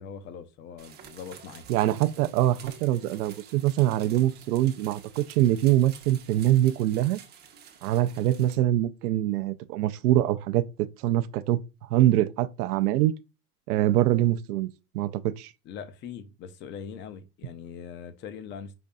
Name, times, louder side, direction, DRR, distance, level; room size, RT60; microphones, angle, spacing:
voice 1, 0.0-1.6 15.6-18.7, left 7 dB, 25° left, 0.4 m, -41 dB
sound 1, 0.8-8.6, right 8 dB, 25° right, 0.6 m, -49 dB
voice 2, 1.7-7.2 7.8-10.6 11.0-11.6 11.9-13.1 13.7-14.7 14.9-15.5, right 13 dB, 80° right, 0.6 m, -24 dB
5.2 x 2.6 x 2.2 m
supercardioid pair, 120°, 45 cm